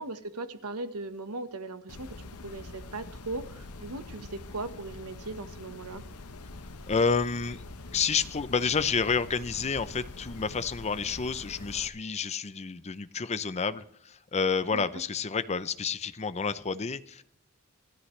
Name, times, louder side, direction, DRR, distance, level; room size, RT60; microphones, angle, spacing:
voice 1, 0.0-6.0 14.7-14.8, right 2 dB, 85° right, 10 dB, 1.3 m, -38 dB
sound 1, 1.9-11.9, left 2 dB, 80° left, 1.0 m, -44 dB
voice 2, 6.9-7.6 7.9-17.2, left 5 dB, 30° left, 13 dB, 0.6 m, -29 dB
26.5 x 13.0 x 3.3 m, 0.71 s
head